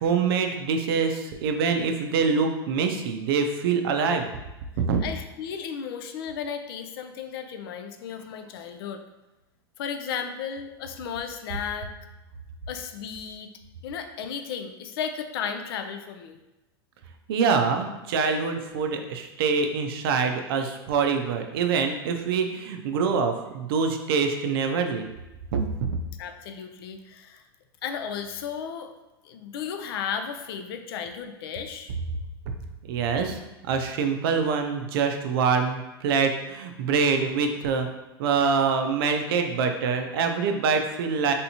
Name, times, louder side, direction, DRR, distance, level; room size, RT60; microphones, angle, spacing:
voice 1, 0.0-4.3 4.8-5.0 17.3-25.1 25.5-25.6 32.9-37.9 38.2-41.3, right 5 dB, 70° right, 5 dB, 0.5 m, -25 dB
voice 2, 5.0-9.0 9.8-11.9 12.7-13.5 13.8-16.4 26.2-27.4 27.8-28.9 29.2-31.9, left 7 dB, 70° left, 7 dB, 0.4 m, -34 dB
3.4 x 2.7 x 2.8 m, 1.0 s
hypercardioid pair, 125°, 13 cm